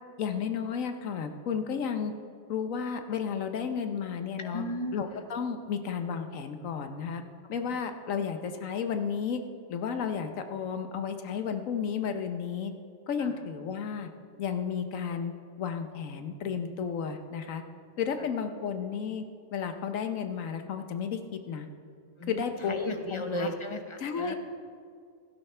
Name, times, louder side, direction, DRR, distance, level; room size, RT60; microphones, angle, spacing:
voice 1, 0.2-2.1 2.5-4.6 4.9-7.2 7.5-9.4 9.7-12.7 13.1-14.1 14.4-15.3 15.6-17.6 18.0-19.2 19.5-21.2 21.5-21.7 22.3-22.8 23.1-23.5 24.0-24.4, left 7 dB, 75° left, 7 dB, 1.2 m, -32 dB
voice 2, 4.4-4.9 13.2-13.3 22.2-24.3, left 1 dB, 25° left, 6 dB, 0.7 m, -35 dB
16.5 x 12.5 x 3.3 m, 2.2 s
omnidirectional pair, 1.4 m